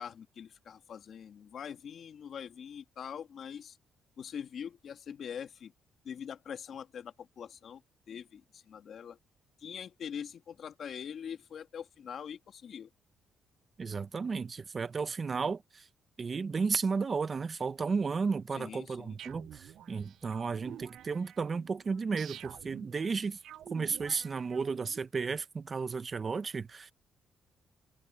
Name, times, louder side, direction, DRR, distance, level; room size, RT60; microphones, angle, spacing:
voice 1, 0.0-3.8 4.2-5.7 6.0-7.8 8.1-9.2 9.6-12.9 18.5-19.2, left 8 dB, 60° left, 2.2 m, -43 dB
voice 2, 13.8-15.9 16.2-23.4 23.7-26.9, right 5 dB, 35° right, 0.9 m, -33 dB
sound 1, 19.2-25.0, right 11 dB, 75° right, 0.5 m, -50 dB
cardioid pair, 90°, 0 cm